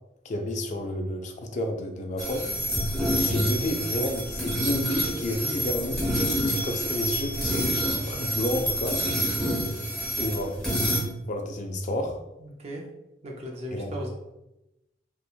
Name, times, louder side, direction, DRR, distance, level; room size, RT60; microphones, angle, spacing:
voice 1, 0.2-2.5 3.2-6.1 6.6-9.0 10.2-10.6 11.3-12.2 13.7-13.9, left 1 dB, 40° left, 4 dB, 0.3 m, -30 dB
sound 1, 2.2-11.0, equal, 5° left, 0.7 m, -27 dB
voice 2, 13.2-14.1, equal, 35° right, -1 dB, 0.4 m, -36 dB
3.0 x 2.1 x 2.3 m, 0.92 s
head